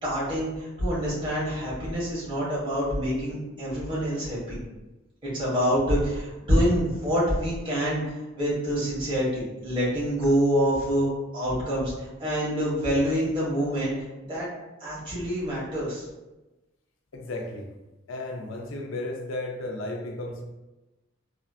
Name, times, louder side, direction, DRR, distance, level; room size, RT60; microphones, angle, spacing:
voice 1, 0.0-4.6 5.2-13.9 14.3-14.5 14.8-16.0, equal, 25° right, -8 dB, 1.5 m, -26 dB
voice 2, 17.1-17.7 18.1-20.4, left 2 dB, 85° left, 2 dB, 0.5 m, -34 dB
3.2 x 2.7 x 2.3 m, 1.0 s
head